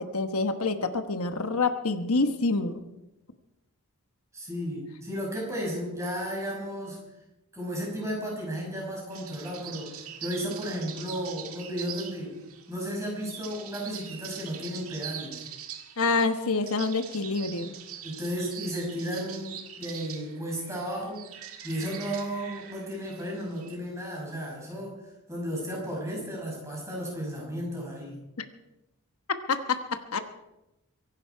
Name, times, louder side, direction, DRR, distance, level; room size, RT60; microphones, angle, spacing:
voice 1, 0.0-2.8 16.0-17.7 29.5-30.2, left 3 dB, 80° left, 8 dB, 1.2 m, -27 dB
voice 2, 4.3-7.0 7.5-12.4 12.7-15.4 18.0-21.3 21.6-28.2, equal, 15° right, -2 dB, 5.9 m, -34 dB
sound 1, 9.1-23.7, right 9 dB, 75° right, 1.8 m, -43 dB
23.5 x 11.5 x 4.7 m, 0.94 s
head